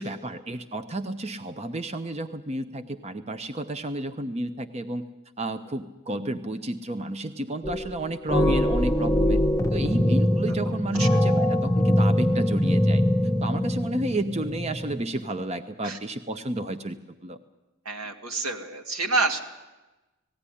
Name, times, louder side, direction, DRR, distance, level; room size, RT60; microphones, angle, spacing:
voice 1, 0.0-5.1 5.4-9.4 9.7-13.0 13.4-17.4, right 1 dB, 30° right, 9 dB, 0.7 m, -31 dB
sound 1, 7.6-8.0 8.3-15.0, left 1 dB, 15° left, 0.7 m, -23 dB
voice 2, 10.7-11.1 15.8-16.0 17.9-19.4, right 3 dB, 85° right, 4 dB, 2.2 m, -28 dB
19.0 x 15.5 x 10.0 m, 1.1 s
head